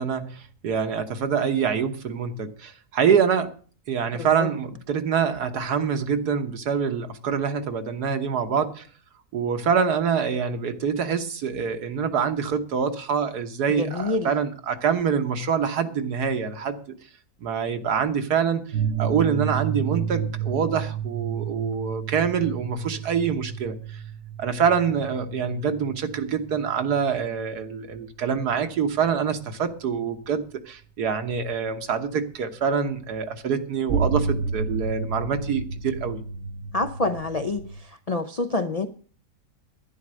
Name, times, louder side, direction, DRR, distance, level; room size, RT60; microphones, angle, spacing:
voice 1, 0.0-3.5 3.9-8.9 9.3-16.8 17.4-18.6 19.0-24.0 24.4-36.2, right 6 dB, 75° right, 7 dB, 1.7 m, -25 dB
voice 2, 4.2-4.5 13.8-14.3 36.7-37.6 38.1-38.9, left 3 dB, 55° left, 8 dB, 0.4 m, -26 dB
sound 1, 18.7-28.0 29.0-29.1 33.9-37.8, right 6 dB, 55° right, 0.9 m, -31 dB
11.0 x 10.0 x 6.3 m, 0.42 s
omnidirectional pair, 1.7 m